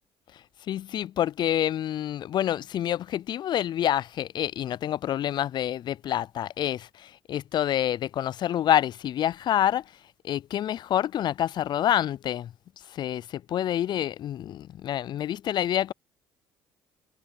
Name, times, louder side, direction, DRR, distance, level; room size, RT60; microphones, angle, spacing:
voice 1, 0.7-9.8 10.2-12.5 12.9-15.9, left 11 dB, 50° left, 0.4 m, -27 dB
supercardioid pair, 70°, 10 cm